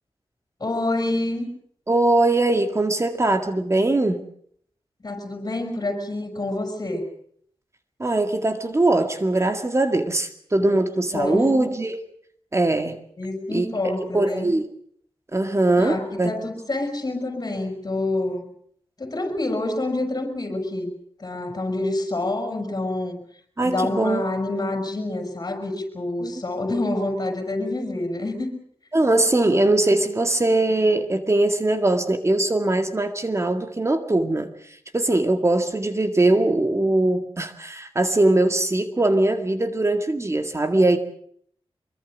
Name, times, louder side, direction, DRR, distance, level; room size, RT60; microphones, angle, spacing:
voice 1, 0.6-1.5 5.0-7.1 10.6-10.8 11.1-11.7 13.2-14.5 15.8-18.5 19.0-20.9 21.2-23.2 23.6-28.5, left 2 dB, 40° left, 6 dB, 6.4 m, -27 dB
voice 2, 1.9-4.2 8.0-12.0 12.5-13.0 13.5-13.7 14.1-14.7 15.3-16.3 23.6-24.2 26.2-26.3 28.9-41.0, right 2 dB, 30° right, 7 dB, 2.0 m, -21 dB
24.5 x 23.0 x 6.2 m, 0.62 s
wide cardioid pair, 90°, 10 cm